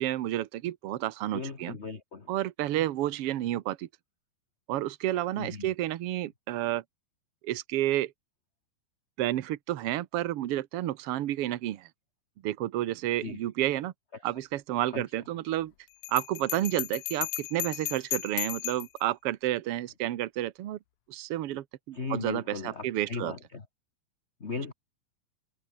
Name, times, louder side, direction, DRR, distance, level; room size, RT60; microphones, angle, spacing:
voice 1, 0.0-1.8 2.3-3.9 4.7-6.8 7.4-8.1 9.2-11.9 12.4-13.9 14.2-15.7 16.1-20.8 21.1-23.3, right 14 dB, 65° right, 1.5 m, -30 dB
voice 2, 1.3-2.3 5.4-5.7 13.2-13.4 14.9-15.0 21.9-23.6 24.4-24.7, left 4 dB, 30° left, 1.4 m, -37 dB
Bell, 16.0-19.0, left 19 dB, 85° left, 1.7 m, -35 dB
omnidirectional pair, 3.9 m